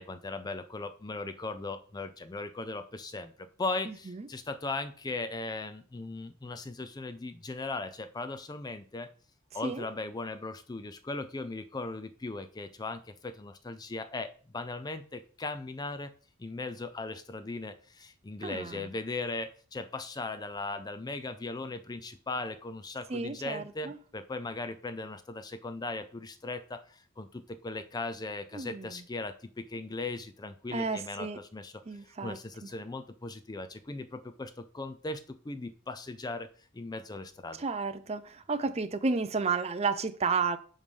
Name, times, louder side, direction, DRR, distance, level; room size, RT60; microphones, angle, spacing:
voice 1, 0.0-9.1 9.5-16.1 16.4-36.5 36.7-37.6, left 3 dB, 20° left, 0.4 m, -38 dB
voice 2, 3.9-4.3 9.6-9.9 18.4-18.9 23.1-24.0 28.5-29.0 30.7-31.4 31.9-32.4 37.6-40.6, right 4 dB, 30° right, 0.5 m, -32 dB
5.4 x 5.0 x 5.3 m
head